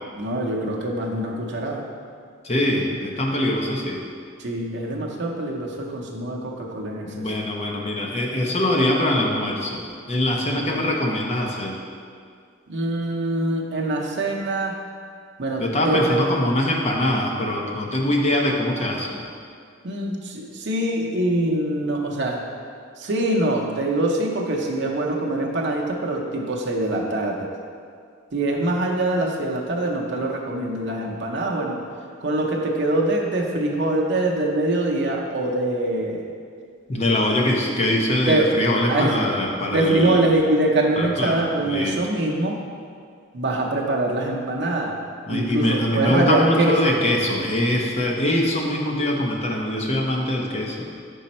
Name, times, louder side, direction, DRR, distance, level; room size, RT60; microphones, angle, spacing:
voice 1, 0.1-1.9 4.4-7.3 10.4-10.9 12.7-14.8 15.4-16.2 19.8-22.5 23.0-27.5 28.3-31.8 32.2-36.2 38.2-38.5 38.9-39.1 39.7-42.6 43.3-45.0 45.3-47.0, right 1 dB, 60° right, -1 dB, 0.7 m, -24 dB
voice 2, 2.4-4.0 7.1-11.8 15.6-19.2 36.9-40.2 41.0-41.4 41.6-42.0 45.3-50.9, left 1 dB, 30° left, 0 dB, 0.7 m, -23 dB
5.4 x 5.1 x 4.2 m, 2.2 s
head